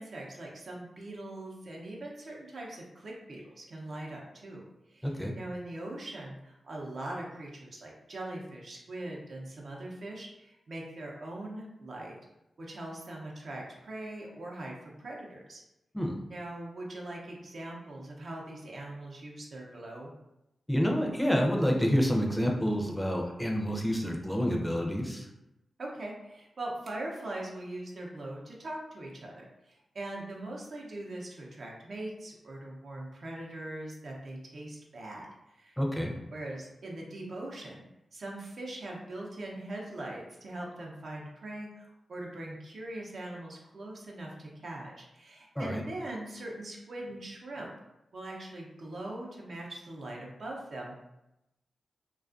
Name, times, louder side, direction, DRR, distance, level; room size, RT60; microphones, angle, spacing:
voice 1, 0.0-4.6 4.9-12.2 12.6-15.6 16.3-20.1 25.8-35.8 36.3-37.8 38.1-47.7 48.1-51.0, right 1 dB, 65° right, -2 dB, 0.6 m, -41 dB
voice 2, 5.0-5.3 15.9-16.1 20.7-25.3 35.8-36.1 45.6-45.8, equal, 5° left, 1 dB, 0.5 m, -28 dB
2.4 x 2.3 x 2.4 m, 0.91 s
cardioid pair, 45°, 0 cm